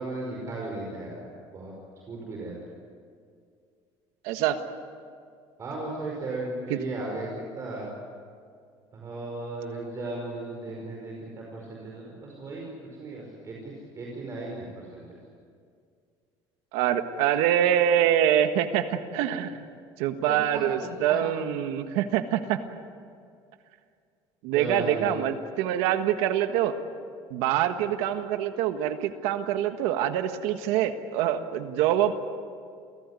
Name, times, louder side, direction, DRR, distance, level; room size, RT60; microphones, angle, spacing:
voice 1, 0.0-1.7 2.1-2.5 5.6-7.9 8.9-12.7 13.0-15.2 20.5-21.2 24.4-25.2, right 2 dB, 30° right, -2 dB, 5.1 m, -36 dB
voice 2, 4.2-4.6 6.7-6.8 16.7-19.7 20.0-22.6 24.4-26.8 27.3-32.1, right 10 dB, 90° right, 7 dB, 1.5 m, -25 dB
28.5 x 16.0 x 9.7 m, 2.3 s
cardioid pair, 150°, 10 cm